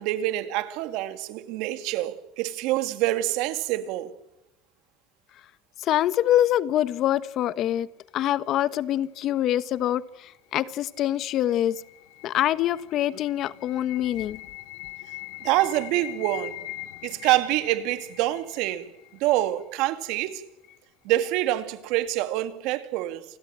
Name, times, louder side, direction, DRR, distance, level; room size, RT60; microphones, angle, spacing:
voice 1, 0.0-4.1 15.4-16.6 17.0-20.4 21.0-23.2, right 15 dB, 75° right, 2.6 m, -26 dB
voice 2, 5.8-7.9 8.1-11.7 12.2-14.4, left 12 dB, 55° left, 1.4 m, -25 dB
sound 1, 10.7-19.7, left 17 dB, 80° left, 2.4 m, -42 dB
29.0 x 20.5 x 7.6 m
supercardioid pair, 105°, 0 cm